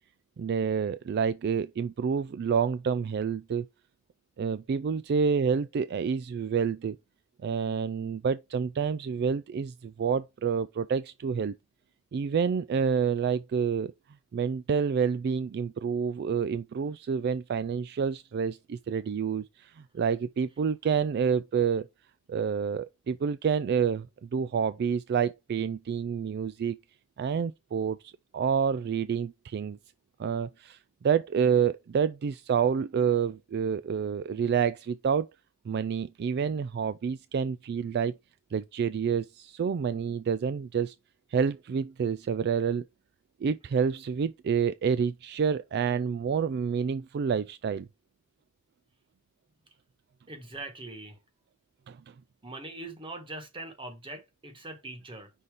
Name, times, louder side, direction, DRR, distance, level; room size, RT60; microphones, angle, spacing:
voice 1, 0.4-3.7 4.4-7.0 7.4-11.5 12.1-13.9 14.3-21.9 22.3-26.8 27.2-29.8 30.2-35.3 35.7-38.1 38.5-40.9 41.3-42.8 43.4-47.9 51.9-52.1, right 6 dB, 50° right, 0.3 m, -28 dB
voice 2, 50.3-51.2 52.4-55.3, right 2 dB, 25° right, 1.4 m, -42 dB
5.6 x 4.0 x 4.9 m
head